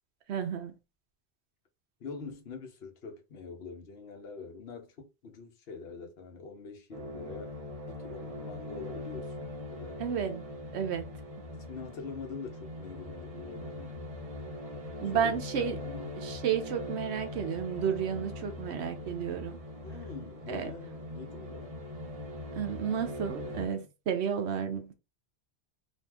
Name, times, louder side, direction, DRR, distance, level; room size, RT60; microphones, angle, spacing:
voice 1, 0.3-0.7 10.0-10.5 10.7-11.1 15.0-15.8 16.2-19.6 20.5-20.7 22.6-24.9, right 8 dB, 75° right, 0.9 m, -32 dB
voice 2, 2.0-7.5 7.9-10.0 11.7-13.9 15.1-16.2 19.8-21.8 23.4-23.9, left 5 dB, 65° left, 1.0 m, -44 dB
sound 1, 6.9-23.7, left 1 dB, 35° right, 0.8 m, -41 dB
2.7 x 2.4 x 3.4 m
omnidirectional pair, 1.1 m